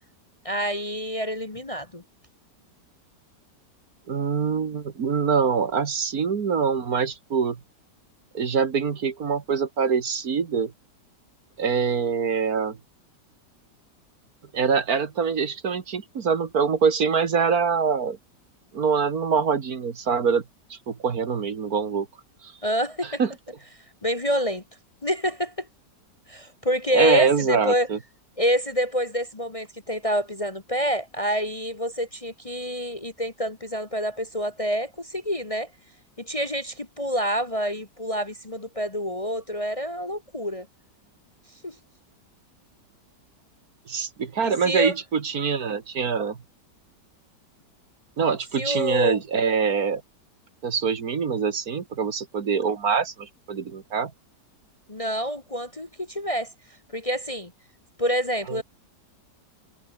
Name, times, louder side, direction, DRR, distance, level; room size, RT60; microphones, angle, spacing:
voice 1, 0.4-2.0 22.6-23.2 24.0-24.6 25.0-25.7 26.3-27.9 28.4-35.7 36.2-40.7 41.6-41.7 44.4-44.9 48.6-49.2 54.9-56.5 56.9-57.5 58.0-58.6, equal, 20° left, 1.4 m, -27 dB
voice 2, 4.1-7.6 8.3-10.7 11.6-12.8 14.5-18.2 18.7-20.4 20.7-22.1 22.4-22.5 23.2-23.3 26.9-28.0 43.9-46.4 48.2-50.0 50.6-54.1 58.5-58.6, right 6 dB, 55° right, 2.0 m, -24 dB
omnidirectional pair, 1.9 m